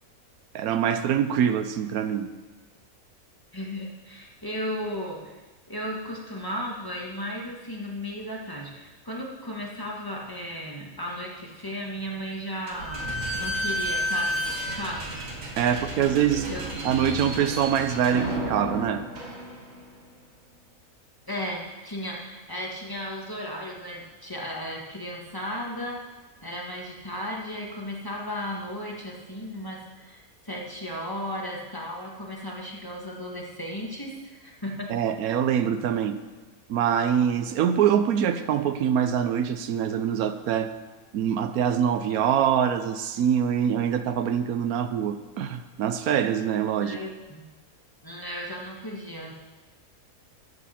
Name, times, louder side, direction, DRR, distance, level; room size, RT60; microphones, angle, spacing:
voice 1, 0.5-2.3 15.6-16.5 16.8-19.1 34.9-36.2 36.7-40.7 41.1-47.0, right 8 dB, 85° right, 10 dB, 1.1 m, -24 dB
voice 2, 3.5-5.4 5.7-13.1 13.3-15.0 16.5-16.7 21.3-26.0 26.4-34.9 46.8-47.4 48.0-49.4, equal, 15° left, -2 dB, 1.5 m, -35 dB
Slam / Squeak, 12.7-19.9, equal, 65° right, 2.0 m, -32 dB
13.0 x 8.1 x 4.3 m, 1.3 s
omnidirectional pair, 1.5 m